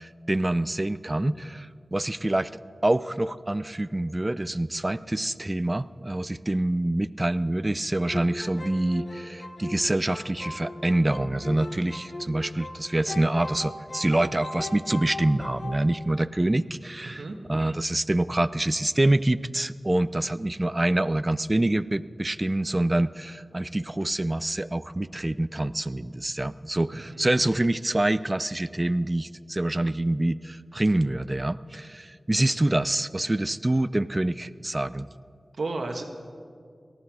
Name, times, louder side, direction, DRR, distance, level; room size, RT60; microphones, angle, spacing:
voice 1, 0.0-2.5 2.8-17.2 17.5-35.1, right 1 dB, 30° right, 16 dB, 0.5 m, -26 dB
sound 1, 8.0-12.8 13.1-15.8, left 2 dB, 70° left, 1.4 m, -38 dB
voice 2, 17.0-17.4 27.1-27.3 35.6-36.0, right 3 dB, 80° right, 4 dB, 1.4 m, -32 dB
18.0 x 14.0 x 4.8 m, 2.2 s
cardioid pair, 45°, 0 cm